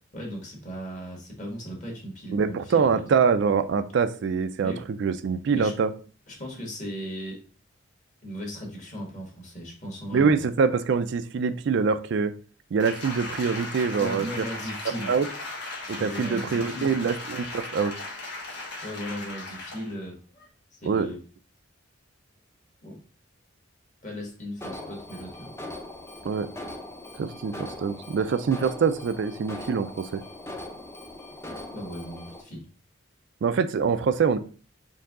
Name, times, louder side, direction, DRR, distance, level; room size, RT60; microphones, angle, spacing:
voice 1, 0.1-3.0 4.6-4.9 5.5-5.7 6.3-7.4 8.2-10.5 14.0-15.1 16.0-16.9 18.8-20.2 20.7-21.2 22.8-23.0 24.0-25.5 31.7-32.7, equal, 40° left, -1 dB, 1.6 m, -37 dB
voice 2, 2.3-4.7 5.0-5.9 10.1-12.3 12.7-14.4 15.1-15.3 15.9-17.9 20.9-21.1 26.2-26.5 27.2-30.2 33.4-34.4, right 5 dB, 65° right, 11 dB, 0.4 m, -24 dB
Applause, 12.8-19.9 20.4-20.5, left 2 dB, 60° left, 1.4 m, -37 dB
Alarm, 24.6-32.4, left 1 dB, 15° left, 0.6 m, -40 dB
4.6 x 2.7 x 3.6 m, 0.39 s
head